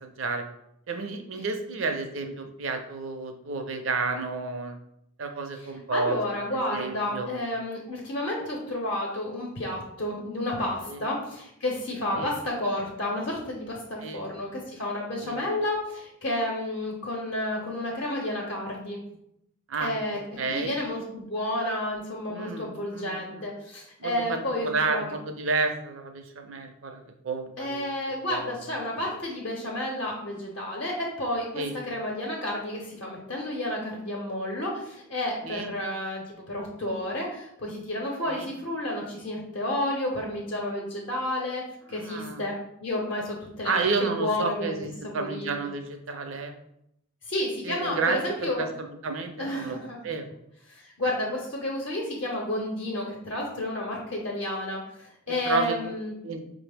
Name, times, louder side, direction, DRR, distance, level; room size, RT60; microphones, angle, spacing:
voice 1, 0.0-0.4 0.9-4.8 5.2-6.2 6.5-7.3 10.9-11.0 12.2-12.3 14.0-14.2 15.2-15.4 19.7-20.7 22.3-23.4 24.0-27.9 28.3-28.5 31.5-31.8 35.4-35.7 38.3-38.5 41.9-42.4 43.6-46.5 47.6-49.8 50.0-50.3 55.3-55.8 56.2-56.4, right 4 dB, 65° right, 5 dB, 0.5 m, -31 dB
voice 2, 5.6-19.0 19.8-20.2 20.5-25.0 27.6-42.5 42.8-44.7 45.0-45.6 47.2-48.7 49.4-50.0 50.7-56.1, left 1 dB, 60° left, -2 dB, 0.7 m, -31 dB
5.0 x 2.0 x 3.3 m, 0.77 s
head